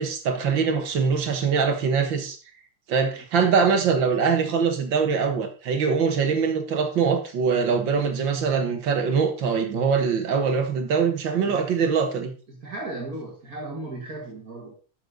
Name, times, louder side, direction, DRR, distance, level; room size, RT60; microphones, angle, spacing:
voice 1, 0.0-2.4 2.9-12.3, right 5 dB, 60° right, 6 dB, 1.9 m, -23 dB
voice 2, 12.5-14.8, right 2 dB, 40° right, -1 dB, 2.3 m, -35 dB
11.5 x 6.6 x 3.9 m, 0.37 s
omnidirectional pair, 2.4 m